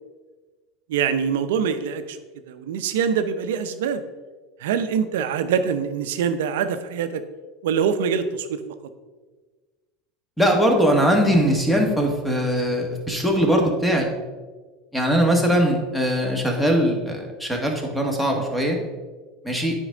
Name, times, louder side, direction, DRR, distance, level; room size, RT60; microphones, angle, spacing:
voice 1, 0.9-2.2 2.5-4.0 4.6-7.2 7.6-8.6, right 7 dB, 75° right, 10 dB, 0.6 m, -24 dB
voice 2, 10.4-14.1 14.9-18.8 19.4-19.7, equal, 5° left, 1 dB, 1.7 m, -21 dB
8.9 x 5.3 x 3.8 m, 1.3 s
hypercardioid pair, 85°, 0 cm